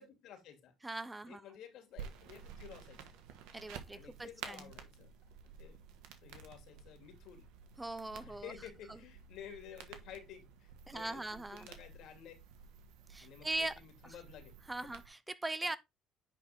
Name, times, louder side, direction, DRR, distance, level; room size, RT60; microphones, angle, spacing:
voice 1, 0.0-0.7 1.3-3.0 3.9-5.1 5.6-5.8 6.2-7.5 8.2-12.3 13.2-14.6, left 9 dB, 70° left, 2.7 m, -53 dB
voice 2, 0.8-1.4 3.5-4.7 7.8-8.5 8.9-9.0 10.9-11.7 13.1-14.1 14.7-15.8, right 2 dB, 15° right, 0.6 m, -40 dB
sound 1, 2.0-15.1, right 7 dB, 80° right, 1.5 m, -52 dB
9.8 x 4.3 x 3.6 m
supercardioid pair, 85°, 0 cm